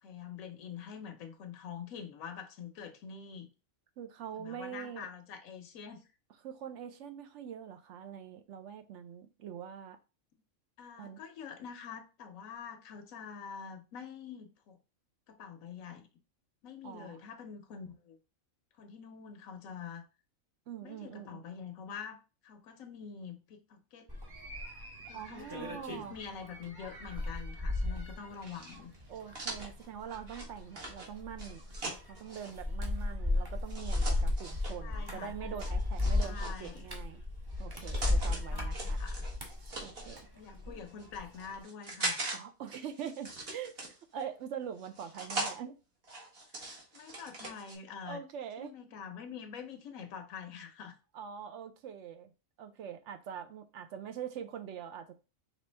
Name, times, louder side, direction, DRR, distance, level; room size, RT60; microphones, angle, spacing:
voice 1, 0.0-3.5 4.3-6.1 10.3-10.4 10.8-14.8 15.3-16.1 16.6-18.2 18.8-20.0 20.8-24.1 25.0-28.9 34.8-35.6 36.2-36.9 38.2-39.3 40.3-42.2 46.5-48.2 48.6-50.9, left 7 dB, 90° left, 1.1 m, -46 dB
voice 2, 4.0-5.1 6.4-10.0 11.0-11.2 16.8-17.2 20.7-21.4 25.1-26.2 29.1-31.6 32.1-37.2 37.6-39.0 39.8-40.2 40.7-40.8 42.3-45.8 48.0-48.8 51.1-52.3 52.6-55.1, right 8 dB, 70° right, 0.8 m, -43 dB
sound 1, 24.1-40.8 41.1-41.6, left 2 dB, 20° right, 0.9 m, -35 dB
sound 2, 28.4-32.5 33.7-34.8 35.6-36.8 37.5-38.4 38.7-40.2 40.9-42.4 42.7-44.2 44.8-45.6 46.0-47.8, right 2 dB, 50° right, 1.5 m, -41 dB
5.1 x 3.1 x 3.3 m
omnidirectional pair, 1.4 m